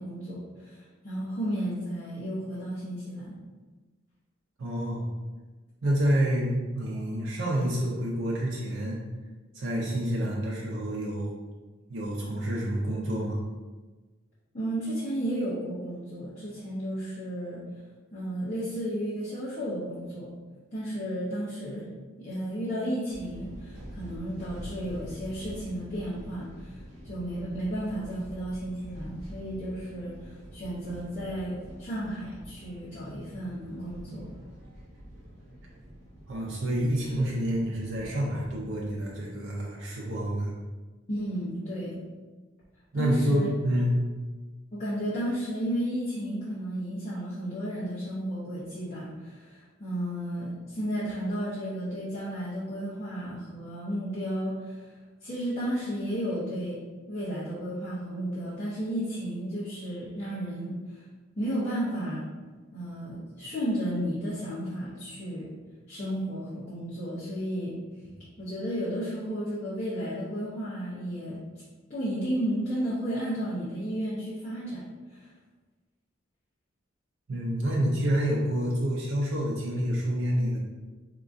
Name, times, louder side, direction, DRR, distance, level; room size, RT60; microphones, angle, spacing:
voice 1, 0.0-3.4 14.5-17.6 18.1-20.3 20.7-21.9 22.2-34.3 41.1-42.0 42.9-43.5 44.7-54.9 55.2-56.8 57.1-61.0 61.4-62.2 62.7-65.5 65.9-67.7 68.4-71.4 71.9-74.8 75.1-75.3, equal, 35° left, -11 dB, 0.9 m, -33 dB
voice 2, 4.6-5.1 5.8-9.0 9.5-11.3 11.9-13.4 36.3-40.5 42.9-44.0 77.3-80.6, equal, 90° right, -4 dB, 0.6 m, -28 dB
sound 1, 23.1-39.1, equal, 60° right, 1.3 m, -46 dB
3.6 x 2.9 x 2.5 m, 1.3 s
head